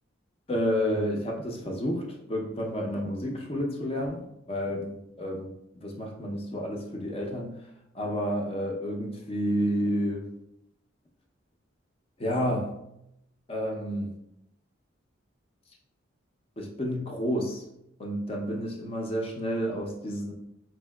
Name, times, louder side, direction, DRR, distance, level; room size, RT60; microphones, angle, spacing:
voice 1, 0.5-7.6 7.9-10.3 12.2-12.7 13.5-14.1 16.6-17.6 18.0-20.3, equal, 30° left, 0 dB, 0.5 m, -30 dB
4.4 x 2.7 x 2.2 m, 0.83 s
head